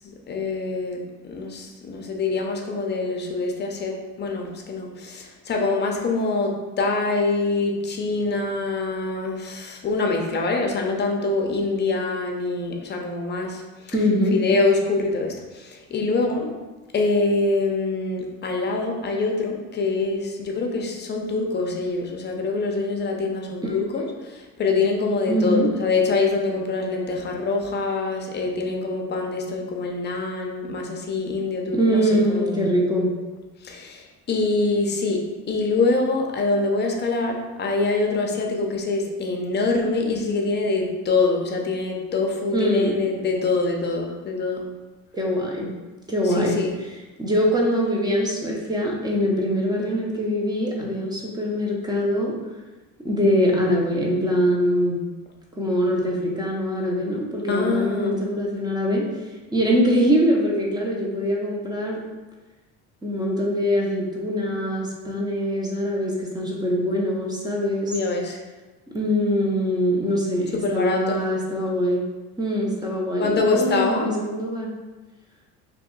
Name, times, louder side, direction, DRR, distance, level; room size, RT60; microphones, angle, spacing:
voice 1, 0.3-14.0 14.3-16.6 16.9-32.7 33.6-44.7 46.2-46.7 57.5-58.1 67.9-68.4 70.5-71.2 73.2-74.1, left 3 dB, 30° left, 2 dB, 0.6 m, -25 dB
voice 2, 13.9-14.4 23.6-24.1 25.3-25.7 31.7-33.1 42.5-42.9 45.1-45.7 46.1-46.6 47.2-52.3 53.0-55.0 55.6-59.1 59.5-62.0 63.0-67.9 68.9-72.0 72.4-74.7, equal, 10° right, -2 dB, 0.8 m, -23 dB
3.0 x 2.5 x 3.8 m, 1.2 s
supercardioid pair, 100°, 34 cm